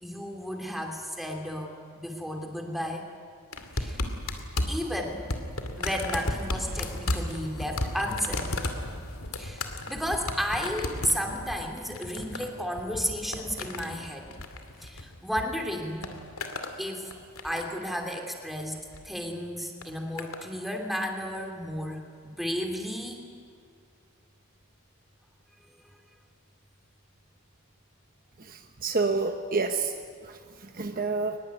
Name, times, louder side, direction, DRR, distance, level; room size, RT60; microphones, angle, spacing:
voice 1, 0.0-3.1 3.7-4.1 4.7-5.2 5.8-8.5 9.4-14.3 14.8-16.1 16.8-17.1 17.4-23.2, equal, ahead, 2 dB, 2.8 m, -33 dB
sound 1, 3.5-15.4 15.7-16.8 17.1-17.8 18.7-19.0 19.8-20.5 21.3-21.4, left 2 dB, 80° left, 2.4 m, -34 dB
voice 2, 28.4-29.9 30.3-31.4, right 4 dB, 40° right, 6 dB, 1.1 m, -29 dB
22.5 x 21.0 x 9.4 m, 2.3 s
head